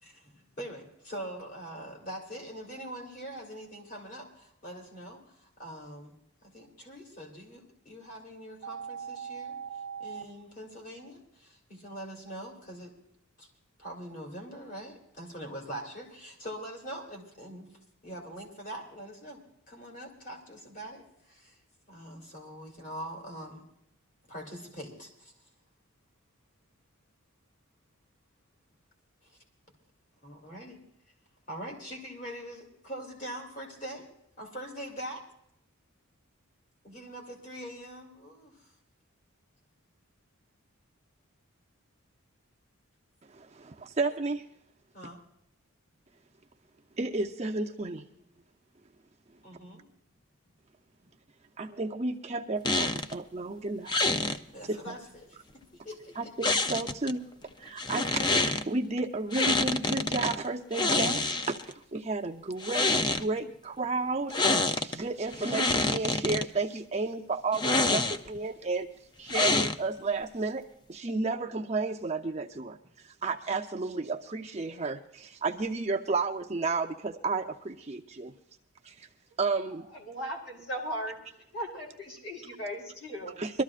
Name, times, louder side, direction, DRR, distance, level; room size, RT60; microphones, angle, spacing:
voice 1, 0.0-6.1 6.4-9.6 10.0-12.9 13.4-13.5 13.8-17.7 18.0-19.4 19.7-21.6 21.9-23.6 24.2-25.3 29.2-29.4 30.2-30.8 31.5-34.1 34.4-35.2 36.8-38.7 44.9-45.2 47.7-47.8 49.4-49.9 54.5-55.3 55.5-56.3 57.9-58.1, right 1 dB, 40° left, 0 dB, 3.0 m, -43 dB
sound 1, 8.6-10.2, right 7 dB, 90° right, 0.5 m, -39 dB
voice 2, 43.3-44.4 47.0-48.1 51.6-53.9 54.7-55.0 56.2-57.3 57.6-68.9 69.2-78.3 78.8-79.1 79.4-79.9 83.4-83.6, right 3 dB, 30° right, 2 dB, 0.6 m, -32 dB
sound 2, 52.6-53.2 53.9-54.4 56.4-57.1 57.8-58.6 59.3-60.4 60.7-61.7 62.5-63.2 64.3-65.0 65.3-66.4 67.5-68.4 69.3-70.0, left 3 dB, 20° left, 0.4 m, -27 dB
voice 3, 79.9-81.2 81.5-83.3, equal, 55° left, -1 dB, 5.1 m, -37 dB
24.0 x 13.0 x 2.5 m, 0.76 s
head